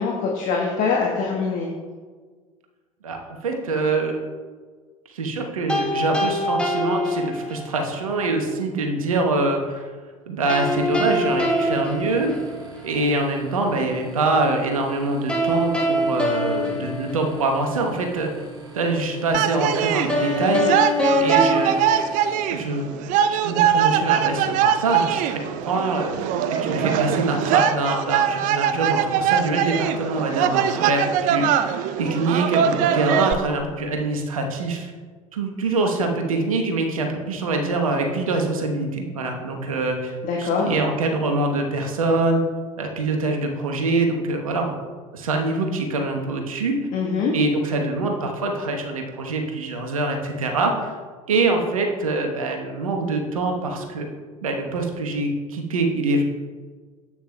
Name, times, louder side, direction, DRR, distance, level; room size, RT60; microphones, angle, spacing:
voice 1, 0.0-1.7 40.2-40.7 46.9-47.4, left 5 dB, 45° left, -1 dB, 1.3 m, -23 dB
voice 2, 3.0-4.2 5.1-9.9 10.3-12.3 12.8-18.3 18.7-22.0 22.5-22.9 23.3-26.1 26.5-34.9 35.3-42.4 42.8-44.7 45.1-46.8 47.3-50.9 51.3-54.1 54.4-56.2, right 2 dB, 75° right, 3 dB, 1.1 m, -24 dB
sound 1, 5.7-7.9 10.5-12.9 15.3-17.8 20.1-22.9, left 1 dB, 5° left, 1.1 m, -24 dB
sound 2, 10.5-22.3, right 4 dB, 20° right, 1.9 m, -43 dB
sound 3, 19.3-33.3, right 9 dB, 50° right, 0.5 m, -22 dB
10.0 x 8.6 x 2.2 m, 1.5 s
figure-of-eight pair, 70°, 18 cm